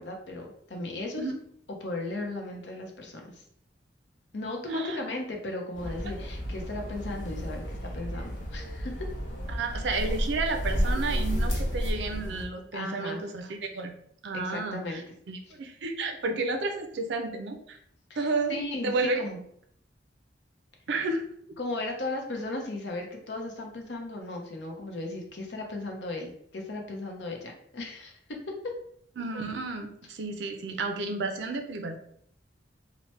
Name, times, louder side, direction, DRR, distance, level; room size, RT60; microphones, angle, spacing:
voice 1, 0.0-1.3 1.8-3.4 4.3-9.1 12.7-13.2 14.3-15.0 18.1-19.4 21.6-28.7, left 2 dB, 70° left, 2 dB, 0.6 m, -36 dB
sound 1, 5.7-12.5, equal, 85° left, 1.0 m, -31 dB
voice 2, 9.5-13.9 14.2-15.0 15.3-17.8 18.2-18.5 18.8-19.2 20.9-21.2 21.5-21.6 29.2-32.0, right 3 dB, 70° right, 5 dB, 0.5 m, -31 dB
2.9 x 2.1 x 3.1 m, 0.66 s
head